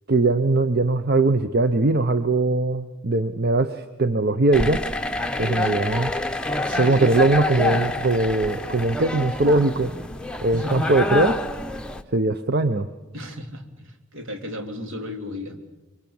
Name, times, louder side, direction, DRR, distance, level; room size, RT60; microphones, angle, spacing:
voice 1, 0.1-4.8 5.4-6.1 6.7-9.9 10.4-11.4 12.1-12.9, right 2 dB, 45° right, 10 dB, 0.8 m, -20 dB
sound 1, 4.5-12.0, left 2 dB, 5° left, 0.9 m, -27 dB
voice 2, 6.7-7.0 10.5-10.9 13.1-15.6, equal, 65° right, 5 dB, 3.0 m, -34 dB
25.5 x 23.5 x 7.1 m, 1.1 s
head